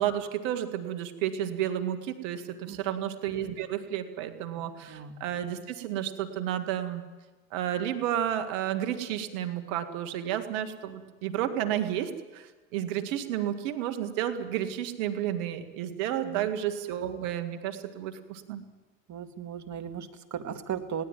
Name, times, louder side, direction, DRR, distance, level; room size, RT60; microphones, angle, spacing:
voice 1, 0.0-7.0 7.5-18.6, right 11 dB, 80° right, 8 dB, 2.0 m, -31 dB
voice 2, 2.7-3.0 4.6-5.2 16.2-16.5 19.1-21.0, right 8 dB, 45° right, 8 dB, 2.3 m, -37 dB
20.0 x 18.0 x 9.3 m, 1.3 s
hypercardioid pair, 65°, 38 cm